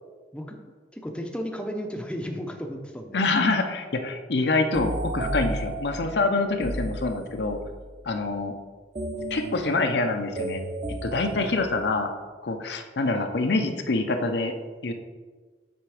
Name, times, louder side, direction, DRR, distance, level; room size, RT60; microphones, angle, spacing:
voice 1, 0.9-3.2 11.4-11.5, equal, 5° left, 3 dB, 0.6 m, -34 dB
voice 2, 3.1-7.6 8.0-8.6 9.3-10.6 11.0-12.1 12.4-14.5 14.8-14.9, left 3 dB, 75° left, 6 dB, 0.6 m, -26 dB
sound 1, 4.7-7.7 8.9-12.2, right 1 dB, 35° right, 0.8 m, -33 dB
sound 2, 9.1-9.6, right 2 dB, 80° right, 1.4 m, -48 dB
8.0 x 3.4 x 4.8 m, 1.4 s
head